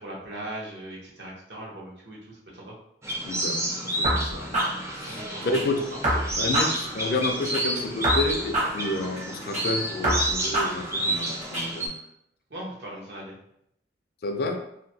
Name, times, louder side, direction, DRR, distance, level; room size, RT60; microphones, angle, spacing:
voice 1, 0.0-2.7 5.0-5.6 5.9-6.0 12.5-13.3, right 1 dB, 75° right, -5 dB, 0.9 m, -39 dB
Morning In Palyem (North Goa India), 3.0-11.9, right 1 dB, 15° right, 0.4 m, -30 dB
voice 2, 3.3-4.6 5.0-5.8 6.4-12.0 14.2-14.6, left 2 dB, 55° left, 4 dB, 0.4 m, -30 dB
sound 1, 4.0-5.6 6.0-7.6 8.0-9.6 10.0-11.6, right 1 dB, 40° right, 0.8 m, -28 dB
2.8 x 2.6 x 2.7 m, 0.76 s
head